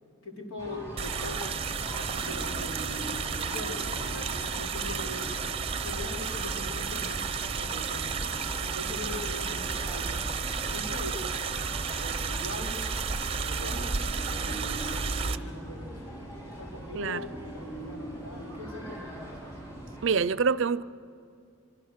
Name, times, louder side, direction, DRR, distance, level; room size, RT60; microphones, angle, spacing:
voice 1, 0.2-2.8 3.1-5.4 5.8-10.2 10.6-11.4 11.9-12.8 13.4-14.7 14.9-19.3, left 2 dB, 75° left, 3.7 m, -41 dB
sound 1, 0.6-20.1, right 1 dB, 15° left, 6.8 m, -42 dB
sound 2, 1.0-15.4, right 5 dB, 25° right, 0.7 m, -32 dB
voice 2, 20.0-20.8, right 5 dB, 60° right, 0.5 m, -25 dB
25.0 x 24.5 x 6.6 m
head